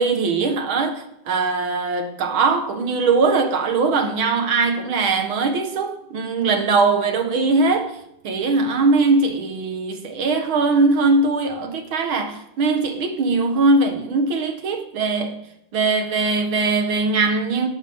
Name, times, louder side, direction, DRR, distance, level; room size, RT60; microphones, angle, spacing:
voice 1, 0.0-8.0 8.2-15.4 15.7-17.7, right 3 dB, 55° right, 1.6 m, -20 dB
16.5 x 14.0 x 3.6 m
omnidirectional pair, 3.8 m